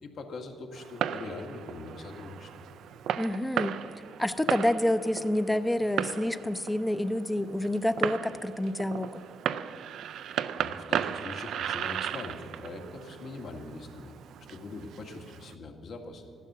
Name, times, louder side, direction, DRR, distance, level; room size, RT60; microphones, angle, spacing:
voice 1, 0.0-2.5 10.6-14.1 14.5-16.3, left 3 dB, 65° left, 3 dB, 1.8 m, -42 dB
Fireworks, 0.7-15.6, right 9 dB, 75° right, 0.4 m, -36 dB
voice 2, 3.2-3.8 4.2-9.2, left 1 dB, 10° left, 12 dB, 0.6 m, -28 dB
14.0 x 11.0 x 6.7 m, 2.4 s
cardioid pair, 90°, 0 cm